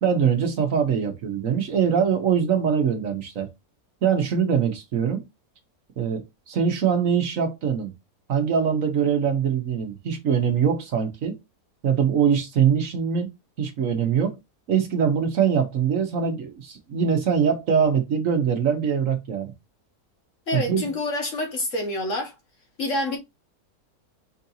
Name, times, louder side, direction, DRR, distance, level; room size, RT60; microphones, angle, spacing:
voice 1, 0.0-3.5 4.0-5.2 6.0-7.9 8.3-11.4 11.8-13.3 13.6-14.4 14.7-19.5 20.5-20.9, right 7 dB, 60° right, 1.3 m, -23 dB
voice 2, 20.5-22.3 22.8-23.2, left 1 dB, 55° left, 1.8 m, -27 dB
4.8 x 4.1 x 2.7 m
omnidirectional pair, 1.6 m